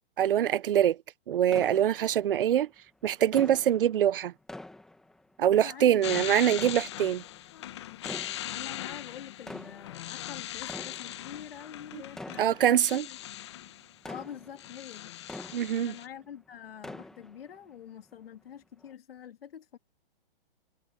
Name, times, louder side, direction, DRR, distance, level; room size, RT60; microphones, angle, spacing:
voice 1, 0.2-1.0 1.3-2.7 3.0-4.3 5.4-7.2 12.4-13.0 15.5-15.9, right 10 dB, 65° right, 0.7 m, -24 dB
sound 1, 1.5-2.6 3.3-5.7 6.5-7.5 8.0-8.9 9.3-16.3 16.6-17.7 18.1-18.2 18.8-18.9, left 2 dB, ahead, 1.1 m, -46 dB
voice 2, 5.5-6.2 7.9-8.0 8.5-13.2 14.1-15.1 15.8-19.8, left 9 dB, 75° left, 2.5 m, -46 dB
sound 2, 6.0-14.0 14.3-16.1, left 13 dB, 30° left, 0.8 m, -40 dB
hypercardioid pair, 175°, 29 cm